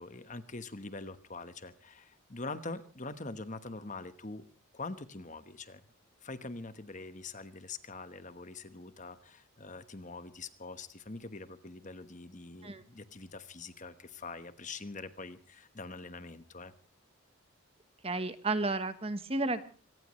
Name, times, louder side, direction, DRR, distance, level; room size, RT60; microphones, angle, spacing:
voice 1, 0.0-4.5 4.7-5.8 6.2-16.7, left 3 dB, 35° left, 11 dB, 1.2 m, -44 dB
voice 2, 18.0-19.7, right 2 dB, 25° right, 11 dB, 1.1 m, -32 dB
25.5 x 18.0 x 3.2 m, 0.38 s
head